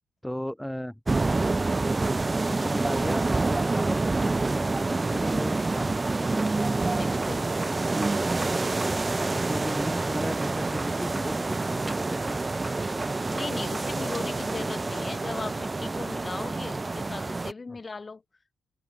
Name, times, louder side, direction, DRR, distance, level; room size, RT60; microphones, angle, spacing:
voice 1, 0.2-1.0 2.5-6.5 8.4-8.7 9.0-13.3 14.6-14.7 16.1-16.2 17.7-17.8, equal, 5° left, 2.4 m, -37 dB
sound 1, 1.1-17.5, right 3 dB, 20° right, 1.1 m, -27 dB
voice 2, 6.9-7.5 13.3-18.2, left 4 dB, 30° left, 2.5 m, -38 dB
cardioid pair, 90°, 0 cm